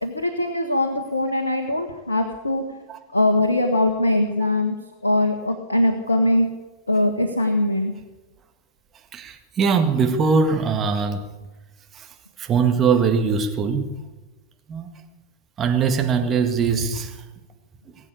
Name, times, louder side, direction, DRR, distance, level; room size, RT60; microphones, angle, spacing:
voice 1, 0.0-2.6 3.1-4.7 5.0-6.5 6.9-7.9, left 1 dB, 80° left, 1.4 m, -21 dB
voice 2, 9.1-11.3 11.9-12.1 12.4-13.9 14.7-14.9 15.6-17.2, right 5 dB, 25° right, 1.9 m, -21 dB
20.5 x 8.4 x 8.5 m
figure-of-eight pair, 90°, 0 cm